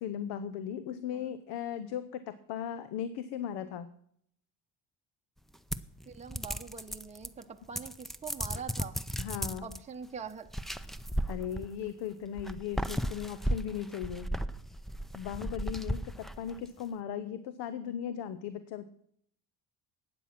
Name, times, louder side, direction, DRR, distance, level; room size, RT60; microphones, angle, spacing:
voice 1, 0.0-3.9 9.2-9.7 11.3-14.3 15.1-18.9, left 9 dB, 85° left, 13 dB, 0.8 m, -37 dB
sound 1, 5.7-7.4 7.7-9.8 10.5-11.9 12.4-16.7, equal, ahead, 0.4 m, -35 dB
voice 2, 6.1-9.0 9.6-10.5, right 6 dB, 15° right, 4 dB, 0.7 m, -44 dB
12.0 x 8.9 x 5.9 m, 0.68 s
cardioid pair, 120°, 40 cm